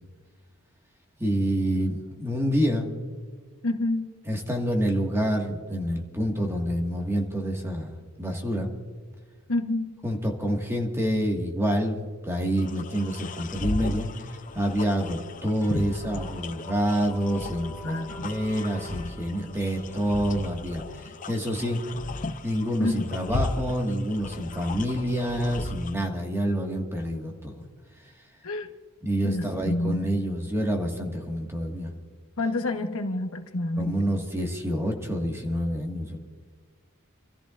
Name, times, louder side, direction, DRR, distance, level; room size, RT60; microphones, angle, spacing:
voice 1, 1.2-2.9 4.2-8.7 10.0-14.1 14.5-21.8 22.4-27.6 29.0-31.9 33.8-36.2, equal, 10° right, 1 dB, 1.7 m, -27 dB
voice 2, 3.6-4.1 9.5-9.9 17.8-18.3 22.8-23.0 28.4-28.7 29.2-30.0 32.4-33.9, left 2 dB, 65° left, 6 dB, 1.1 m, -28 dB
sound 1, 12.6-25.9, left 3 dB, 35° left, 0.6 m, -36 dB
sound 2, 15.6-22.5, left 1 dB, 15° left, 3.3 m, -47 dB
29.0 x 14.0 x 2.5 m, 1.5 s
head